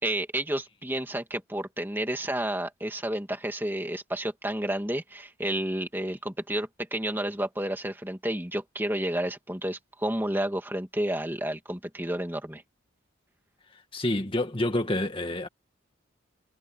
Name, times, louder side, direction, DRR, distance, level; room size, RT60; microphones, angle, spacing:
voice 1, 0.0-12.6, right 1 dB, 10° right, 2.3 m, -31 dB
voice 2, 13.9-15.5, left 1 dB, 25° left, 2.0 m, -28 dB
head